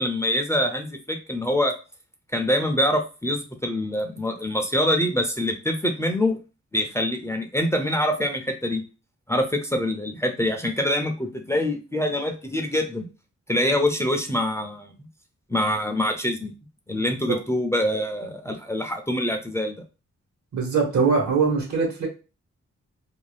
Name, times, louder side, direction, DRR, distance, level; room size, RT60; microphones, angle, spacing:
voice 1, 0.0-1.7 2.3-6.4 6.7-8.8 9.3-13.1 13.5-14.9 15.5-16.5 16.9-19.8, left 1 dB, 10° left, 4 dB, 0.5 m, -25 dB
voice 2, 20.5-22.1, right 5 dB, 75° right, 0 dB, 1.2 m, -22 dB
2.6 x 2.2 x 3.2 m, 0.32 s
cardioid pair, 75°, 29 cm